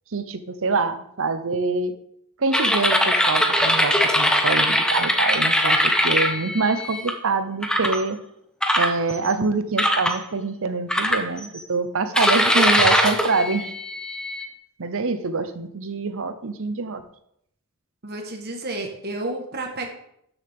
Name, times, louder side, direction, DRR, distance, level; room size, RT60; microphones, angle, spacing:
voice 1, 0.1-1.9 2.4-8.2 8.8-13.7 14.8-17.0, right 3 dB, 65° right, 10 dB, 0.8 m, -25 dB
sound 1, 2.5-7.1 7.6-8.0 8.6-9.3 9.8-10.2 10.9-11.6 12.1-14.5, equal, 5° left, 0.9 m, -21 dB
voice 2, 18.0-19.9, right 2 dB, 45° right, 2 dB, 1.4 m, -31 dB
12.5 x 6.9 x 3.6 m, 0.74 s
head